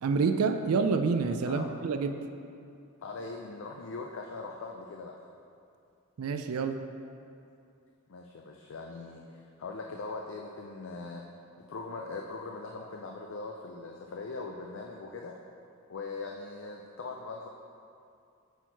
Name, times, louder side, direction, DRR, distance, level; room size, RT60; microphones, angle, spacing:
voice 1, 0.0-2.2 6.2-6.8, right 4 dB, 75° right, 7 dB, 0.4 m, -28 dB
voice 2, 1.5-1.8 3.0-5.3 8.1-11.2 11.7-15.4 15.9-17.5, left 3 dB, 60° left, 1 dB, 0.5 m, -41 dB
8.0 x 4.5 x 4.6 m, 2.5 s
head